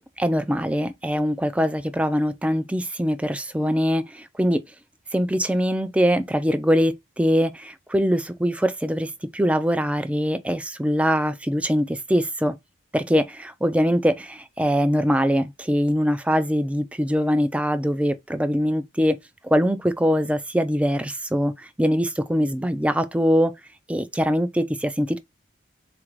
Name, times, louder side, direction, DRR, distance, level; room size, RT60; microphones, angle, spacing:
voice 1, 0.0-4.6 5.1-12.6 12.9-19.2 19.4-23.5 23.9-25.2, equal, 5° right, 0.3 m, -23 dB
3.9 x 2.5 x 4.5 m
head